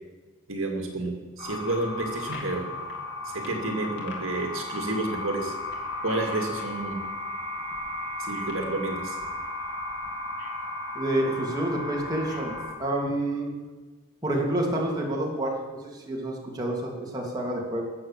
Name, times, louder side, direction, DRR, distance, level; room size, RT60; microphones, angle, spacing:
voice 1, 0.5-2.7 3.2-5.5 6.0-7.0 8.2-9.2, right 2 dB, 65° right, 2 dB, 2.3 m, -30 dB
sound 1, 1.4-12.7, left 2 dB, 55° left, 2.7 m, -35 dB
voice 2, 10.9-13.5 14.2-15.5 15.8-17.9, right 1 dB, 20° right, -2 dB, 2.9 m, -28 dB
21.0 x 7.6 x 7.4 m, 1.3 s
head